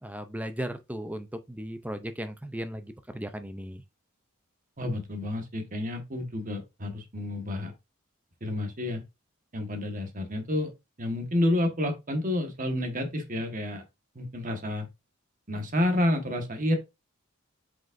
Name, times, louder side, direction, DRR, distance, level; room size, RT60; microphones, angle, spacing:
voice 1, 0.0-3.8, equal, 5° right, 0.6 m, -36 dB
voice 2, 4.8-7.7 8.4-9.0 9.5-10.7 11.0-13.8 14.1-14.9 15.5-16.8, left 1 dB, 40° right, 1.6 m, -29 dB
7.5 x 5.2 x 2.6 m
head